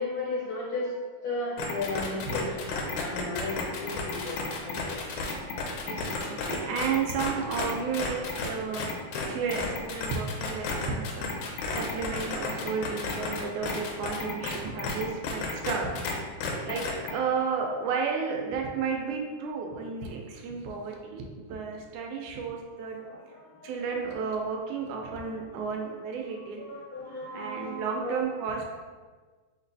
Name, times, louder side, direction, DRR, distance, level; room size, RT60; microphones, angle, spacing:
voice 1, 0.0-5.0 15.0-15.1 16.6-17.0 22.9-24.0 25.0-25.9 26.2-28.1, left 2 dB, 65° left, -6 dB, 1.4 m, -36 dB
sound 1, 1.6-16.1 16.4-17.1, left 4 dB, 85° left, 2.0 m, -32 dB
voice 2, 5.8-8.9 9.3-15.9 16.6-16.9 17.1-23.0 23.6-26.6 27.3-28.7, right 5 dB, 80° right, 1 dB, 1.9 m, -32 dB
5.8 x 2.9 x 2.7 m, 1.4 s
omnidirectional pair, 3.5 m